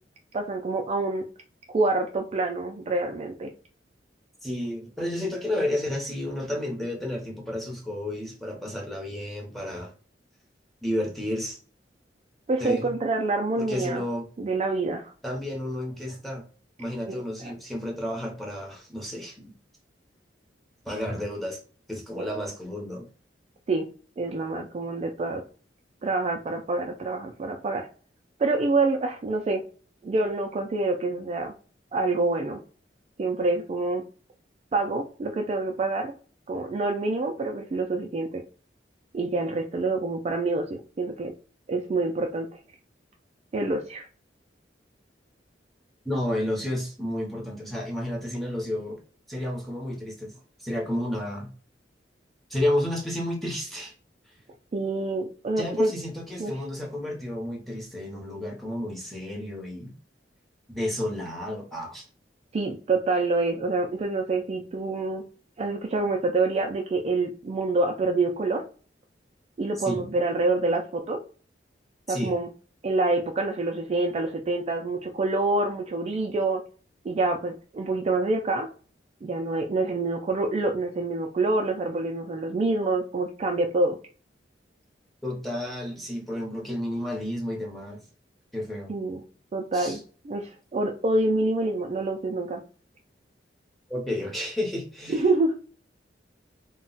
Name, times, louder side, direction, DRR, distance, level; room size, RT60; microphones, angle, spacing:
voice 1, 0.3-1.2 1.7-3.5 12.5-14.1 14.4-15.1 17.1-17.5 22.2-22.3 23.7-23.9 24.2-25.4 26.0-27.9 28.4-29.6 30.0-31.5 31.9-32.6 33.2-34.0 34.7-36.1 36.5-38.4 39.1-41.3 41.7-42.6 43.5-44.1 54.7-55.9 56.4-56.5 62.5-65.2 65.6-68.6 69.6-71.2 72.1-72.5 72.8-76.6 77.0-78.7 79.2-84.0 88.9-89.2 89.5-92.6 95.1-95.5, right 2 dB, 35° right, 0.3 m, -26 dB
voice 2, 4.4-9.9 10.8-11.6 12.6-12.9 13.6-14.3 15.2-16.4 16.8-19.5 20.8-21.6 21.9-23.1 46.0-49.0 49.3-51.5 52.5-53.9 55.6-59.9 60.7-62.0 69.8-70.1 72.1-72.4 85.2-88.0 88.5-88.9 89.7-90.0 93.9-95.2, left 1 dB, ahead, 0.8 m, -31 dB
2.3 x 2.1 x 3.9 m
head